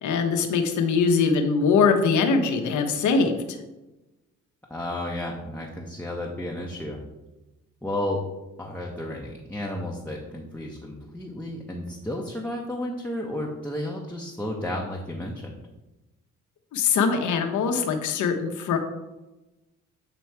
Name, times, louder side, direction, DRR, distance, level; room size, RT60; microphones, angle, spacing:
voice 1, 0.0-3.6 16.7-18.8, left 5 dB, 75° left, 5 dB, 0.9 m, -22 dB
voice 2, 4.7-7.0 7.8-8.2 8.6-15.6, left 1 dB, 5° left, -2 dB, 0.8 m, -32 dB
7.6 x 3.1 x 4.6 m, 1.1 s
cardioid pair, 90°, 30 cm